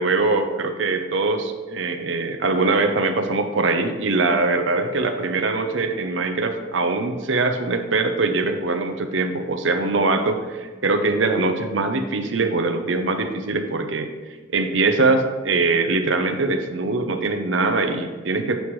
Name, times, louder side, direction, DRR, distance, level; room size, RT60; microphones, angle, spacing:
voice 1, 0.0-14.1 14.5-18.6, right 3 dB, 75° right, 6 dB, 0.8 m, -22 dB
9.3 x 7.8 x 3.2 m, 1.3 s
head